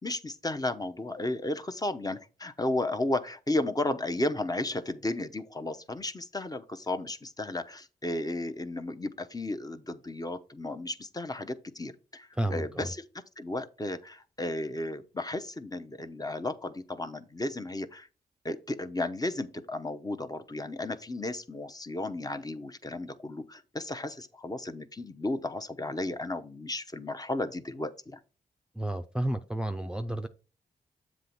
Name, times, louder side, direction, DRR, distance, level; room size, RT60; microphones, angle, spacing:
voice 1, 0.0-13.0 13.4-18.1 18.4-28.2, left 2 dB, 20° left, 0.8 m, -34 dB
voice 2, 12.4-12.9 28.8-30.3, right 1 dB, 5° right, 0.6 m, -31 dB
7.5 x 3.1 x 5.8 m
cardioid pair, 50°, 17 cm